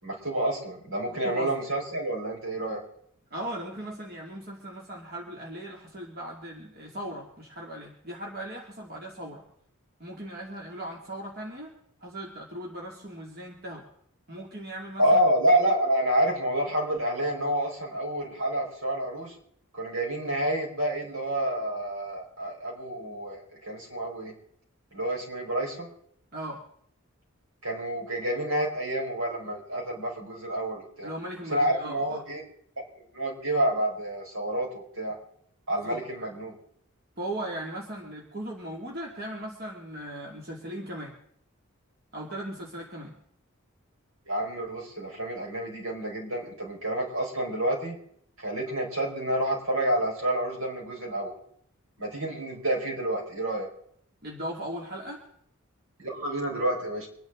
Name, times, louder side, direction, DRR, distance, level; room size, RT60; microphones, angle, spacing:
voice 1, 0.0-2.8 15.0-19.3 19.7-24.3 24.9-25.9 27.6-31.1 31.5-32.4 32.9-35.1 35.7-36.5 44.3-48.0 48.4-51.4 52.0-53.7 56.0-57.1, right 1 dB, 80° right, -1 dB, 5.0 m, -28 dB
voice 2, 1.1-1.5 3.3-9.4 10.0-11.7 12.0-13.9 14.3-15.2 26.3-26.6 31.0-32.2 35.8-36.3 37.2-41.2 42.1-43.2 54.2-55.2, right 1 dB, 45° right, -2 dB, 2.6 m, -38 dB
25.5 x 10.5 x 3.8 m, 0.67 s
head